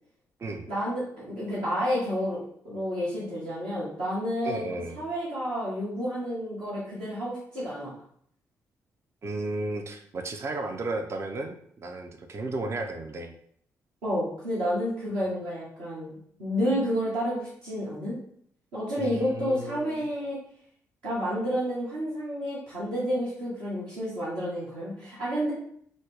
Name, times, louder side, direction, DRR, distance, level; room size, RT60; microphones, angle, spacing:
voice 1, 0.7-2.4 2.6-7.9 14.0-18.2 18.7-20.4 21.0-25.5, equal, 60° right, -8 dB, 1.1 m, -30 dB
voice 2, 4.4-5.0 9.2-13.3 19.0-20.1, right 2 dB, 35° right, 5 dB, 0.5 m, -34 dB
4.1 x 2.0 x 3.1 m, 0.64 s
figure-of-eight pair, 40°, 8 cm